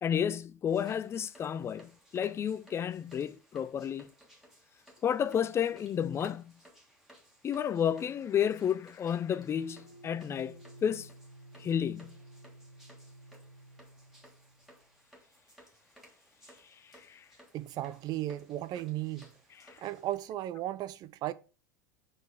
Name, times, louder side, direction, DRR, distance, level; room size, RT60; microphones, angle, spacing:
voice 1, 0.0-4.1 5.0-6.5 7.4-11.1 11.6-12.2 17.1-17.2 19.7-19.8, left 8 dB, 25° left, 0.5 m, -31 dB
sound 1, 0.7-20.1, equal, 5° right, 2.3 m, -60 dB
sound 2, 9.6-14.8, right 1 dB, 80° left, 1.3 m, -54 dB
voice 2, 17.5-19.3 19.8-21.3, right 14 dB, 40° right, 0.6 m, -35 dB
5.6 x 5.3 x 5.0 m
figure-of-eight pair, 80°, 10 cm